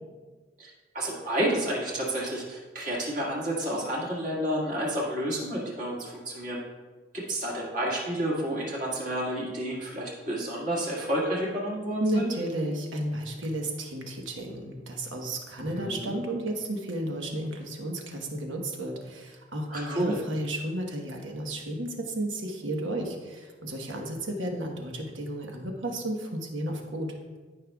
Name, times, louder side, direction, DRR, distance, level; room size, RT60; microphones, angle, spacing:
voice 1, 0.6-6.6 7.1-12.3 15.8-16.2 19.7-20.2, right 1 dB, 40° right, -5 dB, 2.0 m, -30 dB
voice 2, 12.0-27.1, right 1 dB, 85° right, 2 dB, 1.2 m, -32 dB
13.0 x 5.5 x 2.3 m, 1.3 s
head